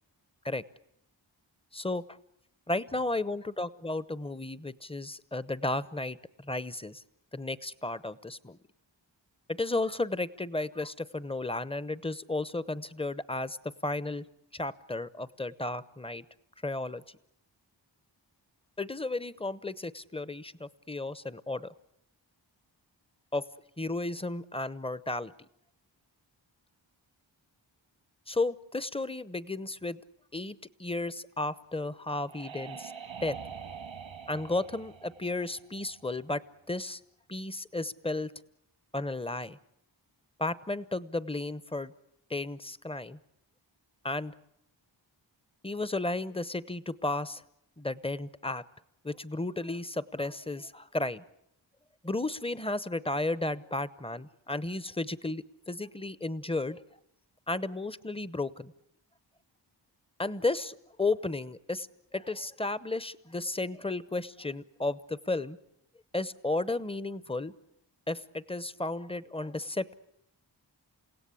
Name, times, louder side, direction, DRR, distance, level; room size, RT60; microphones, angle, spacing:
voice 1, 1.7-2.0 2.7-7.0 7.3-8.6 9.5-13.6 13.8-14.2 14.5-16.2 16.6-17.0 18.8-21.7 23.3-23.5 23.8-25.3 28.3-30.0 30.3-32.9 33.2-33.4 34.3-36.4 36.7-37.0 37.3-38.3 38.9-39.6 40.4-41.9 42.3-43.2 44.0-44.3 45.6-47.4 47.8-48.6 49.0-51.2 52.0-56.8 57.5-58.7 60.2-61.9 62.1-65.6 66.1-67.5 68.1-69.9, left 2 dB, 10° left, 16 dB, 0.9 m, -33 dB
sound 1, 31.7-36.3, right 7 dB, 85° right, 1.7 m, -45 dB
29.0 x 17.0 x 8.5 m, 0.79 s
wide cardioid pair, 50°, 46 cm